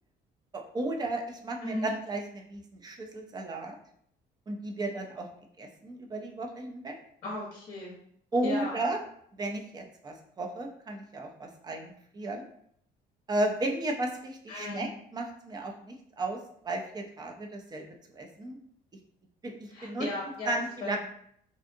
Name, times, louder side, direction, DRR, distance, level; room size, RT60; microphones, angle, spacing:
voice 1, 0.5-3.7 4.5-5.3 5.6-7.0 8.3-9.0 9.4-12.5 13.3-16.4 16.6-17.8 18.1-18.6 19.4-20.1 20.5-21.0, right 2 dB, 25° right, 2 dB, 0.4 m, -34 dB
voice 2, 7.2-7.9 8.4-8.7 14.5-14.9 19.7-21.0, left 2 dB, 35° left, -3 dB, 0.7 m, -36 dB
2.6 x 2.4 x 2.6 m, 0.67 s
cardioid pair, 110°, 17 cm